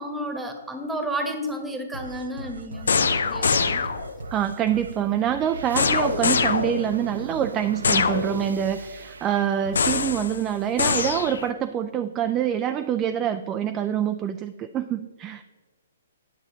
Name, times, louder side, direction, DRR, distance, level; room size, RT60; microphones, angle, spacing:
voice 1, 0.0-3.9, equal, 5° right, 5 dB, 1.1 m, -32 dB
sound 1, 1.9-11.3, right 3 dB, 85° right, 0.5 m, -39 dB
sound 2, 2.9-4.2 5.8-7.0 7.8-8.6 9.8-10.4 10.8-11.5, left 5 dB, 80° left, 0.6 m, -23 dB
voice 2, 4.3-15.4, right 9 dB, 25° right, 9 dB, 0.3 m, -26 dB
8.9 x 7.2 x 3.9 m, 1.3 s
hypercardioid pair, 135°, 0 cm